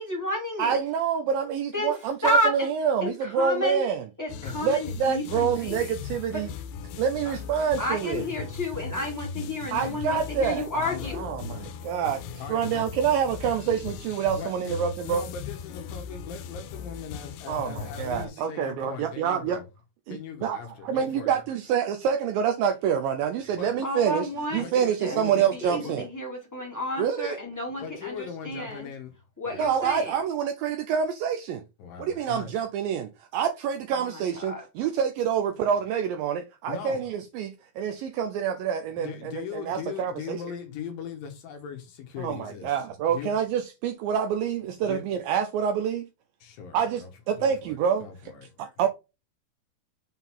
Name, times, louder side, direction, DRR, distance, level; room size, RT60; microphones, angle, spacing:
voice 1, 0.0-0.8 1.7-1.9 2.2-2.7 3.0-3.8 4.2-5.8 6.3-6.4 7.8-11.2 23.8-28.9 29.4-30.1 34.1-34.2 34.5-34.6, left 1 dB, 5° left, 1.7 m, -31 dB
voice 2, 0.6-4.0 4.6-6.5 7.0-8.2 9.7-10.7 11.1-12.2 12.5-15.2 17.5-19.6 20.1-20.6 20.8-26.1 27.0-27.4 29.6-31.6 32.0-40.4 42.2-46.1 46.7-48.1 48.6-48.9, right 7 dB, 85° right, 2.1 m, -27 dB
sound 1, 4.3-18.3, left 6 dB, 85° left, 2.8 m, -38 dB
voice 3, 10.7-11.5 12.4-12.9 14.3-14.6 15.0-19.7 20.1-21.4 23.5-23.7 24.3-26.0 27.8-29.1 29.4-29.7 31.8-32.5 36.7-37.0 38.9-42.8 43.1-43.3 44.8-45.0 46.4-47.1 47.4-48.5, left 7 dB, 70° left, 2.5 m, -40 dB
7.0 x 3.8 x 4.4 m
omnidirectional pair, 4.6 m